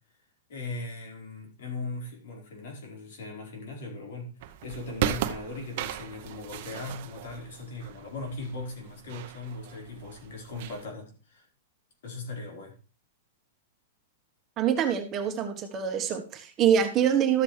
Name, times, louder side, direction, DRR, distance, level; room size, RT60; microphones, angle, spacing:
voice 1, 0.5-4.3 4.6-11.4 12.0-12.7, left 2 dB, 70° left, 0 dB, 4.7 m, -39 dB
sound 1, 4.4-10.8, right 11 dB, 50° right, 0.8 m, -36 dB
voice 2, 14.6-17.4, right 8 dB, 25° right, 5 dB, 1.2 m, -25 dB
12.5 x 7.6 x 3.3 m, 0.35 s
supercardioid pair, 155°, 0 cm